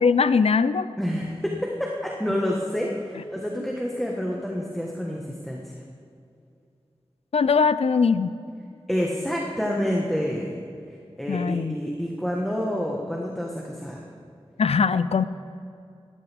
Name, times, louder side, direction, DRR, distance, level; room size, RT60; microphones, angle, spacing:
voice 1, 0.0-0.9 7.3-8.3 11.3-11.8 14.6-15.2, left 5 dB, 80° left, 14 dB, 0.5 m, -21 dB
voice 2, 1.0-5.7 8.9-14.0, equal, ahead, -2 dB, 1.5 m, -28 dB
18.0 x 13.0 x 3.6 m, 2.4 s
wide cardioid pair, 55°, 10 cm